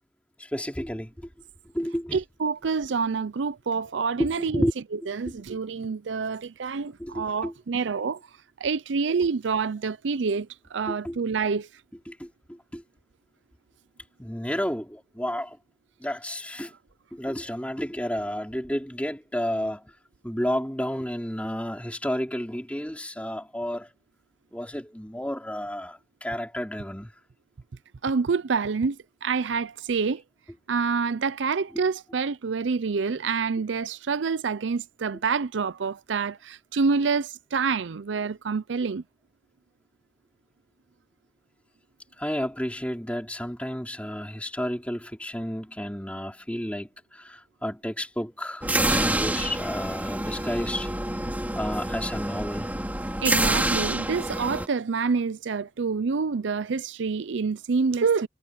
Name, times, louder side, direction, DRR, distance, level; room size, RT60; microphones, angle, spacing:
voice 1, 0.4-1.3 1.7-2.2 4.2-4.7 5.3-5.4 7.0-7.8 10.9-11.2 12.1-12.8 14.2-15.6 16.0-16.7 17.1-19.8 20.2-23.9 24.5-27.1 31.7-31.8 42.2-50.9 51.5-52.7, equal, 5° left, 4.4 m, -31 dB
voice 2, 2.1-4.7 4.9-8.2 8.6-11.7 28.0-30.2 30.7-39.0 53.2-58.3, right 5 dB, 80° right, 0.5 m, -27 dB
sound 1, 48.6-54.7, right 1 dB, 10° right, 2.8 m, -27 dB
head